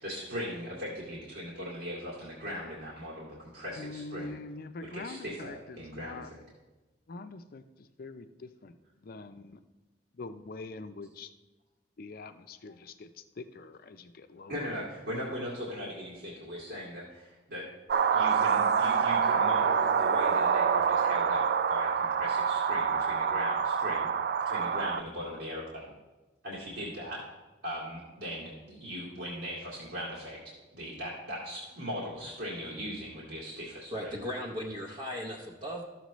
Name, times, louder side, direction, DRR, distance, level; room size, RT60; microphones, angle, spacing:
voice 1, 0.0-4.3 4.9-6.4 14.5-17.6 18.1-24.1 24.4-25.9 26.4-27.2 27.6-34.1, equal, 90° right, -8 dB, 2.3 m, -39 dB
voice 2, 3.7-6.3 7.1-9.6 10.1-11.3 12.0-14.7, left 3 dB, 50° left, 10 dB, 0.5 m, -44 dB
sound 1, 17.9-25.0, right 6 dB, 55° right, 0.3 m, -26 dB
voice 3, 33.9-35.8, equal, 40° right, -2 dB, 0.8 m, -37 dB
13.0 x 7.4 x 3.1 m, 1.2 s
head